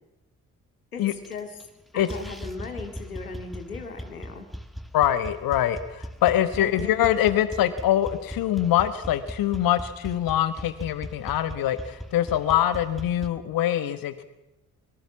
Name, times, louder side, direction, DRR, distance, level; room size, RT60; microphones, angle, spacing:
voice 1, 0.9-1.6 1.9-4.5 6.6-7.1, left 5 dB, 85° left, 6 dB, 2.2 m, -37 dB
sound 1, 1.1-1.7 2.0-13.3, equal, ahead, 2.3 m, -39 dB
voice 2, 4.9-14.2, left 11 dB, 55° left, 12 dB, 1.4 m, -24 dB
24.0 x 23.0 x 7.3 m, 0.96 s
figure-of-eight pair, 40°, 42 cm